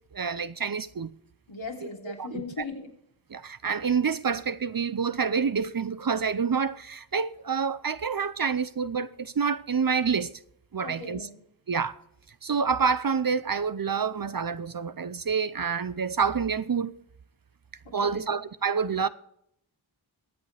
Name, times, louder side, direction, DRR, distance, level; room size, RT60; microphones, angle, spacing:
voice 1, 0.1-1.1 1.8-1.9 2.2-2.4 3.3-10.3 10.7-11.3 11.7-12.0 12.4-16.9 17.9-19.1, right 6 dB, 45° right, 0.7 m, -27 dB
voice 2, 1.5-2.9 10.8-11.4 17.8-18.4, left 3 dB, 70° left, 3.3 m, -38 dB
23.0 x 8.1 x 3.4 m
wide cardioid pair, 55°, 48 cm